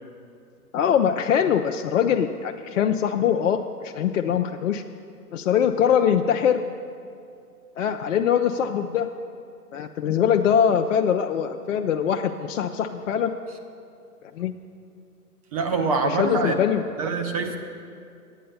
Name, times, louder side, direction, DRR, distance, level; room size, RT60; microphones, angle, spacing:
voice 1, 0.7-4.8 5.3-6.6 7.8-9.1 9.7-13.3 14.4-14.5 16.0-16.8, left 8 dB, 55° left, 5 dB, 0.5 m, -22 dB
voice 2, 15.5-16.5 17.0-17.6, right 4 dB, 25° right, 5 dB, 0.6 m, -24 dB
9.2 x 8.6 x 6.8 m, 2.4 s
hypercardioid pair, 140°, 46 cm